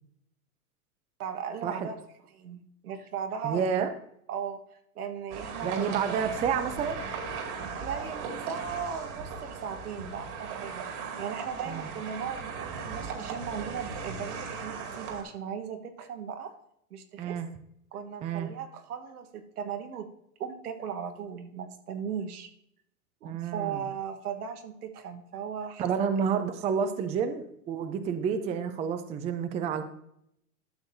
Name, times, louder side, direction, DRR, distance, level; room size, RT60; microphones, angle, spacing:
voice 1, 1.2-2.0 2.3-3.9 4.3-6.3 7.6-16.5 16.9-17.3 17.9-20.1 20.4-22.5 23.2-26.1, right 7 dB, 80° right, 6 dB, 1.3 m, -37 dB
voice 2, 3.4-3.9 5.6-7.0 11.7-11.9 17.2-17.5 18.2-18.5 23.2-23.9 25.8-29.8, right 7 dB, 15° right, 9 dB, 0.4 m, -29 dB
sound 1, 5.3-15.2, right 5 dB, 55° right, 2.3 m, -38 dB
12.0 x 6.8 x 2.7 m, 0.73 s
hypercardioid pair, 110°, 44 cm